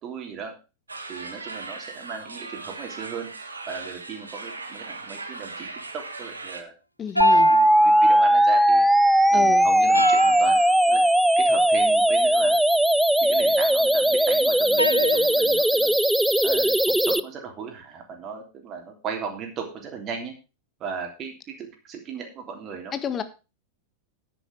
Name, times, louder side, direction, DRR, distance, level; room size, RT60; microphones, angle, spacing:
voice 1, 0.0-0.5 1.1-3.3 3.7-6.7 7.3-8.8 9.3-10.6 10.9-11.0 11.4-12.6 13.2-15.9 16.4-16.7 17.0-20.3 20.8-22.9, right 6 dB, 30° right, 3 dB, 3.2 m, -36 dB
sound 1, 0.9-6.6, right 3 dB, 80° right, 1.5 m, -38 dB
voice 2, 7.0-7.5 9.3-9.7 22.9-23.2, left 7 dB, 25° left, 11 dB, 1.4 m, -29 dB
sound 2, 7.2-8.3 9.9-10.8 14.8-15.8, equal, 90° left, 0.5 m, -29 dB
sound 3, 7.2-17.2, right 1 dB, ahead, 0.5 m, -19 dB
9.9 x 9.1 x 4.6 m, 0.30 s
figure-of-eight pair, 90°, 0 cm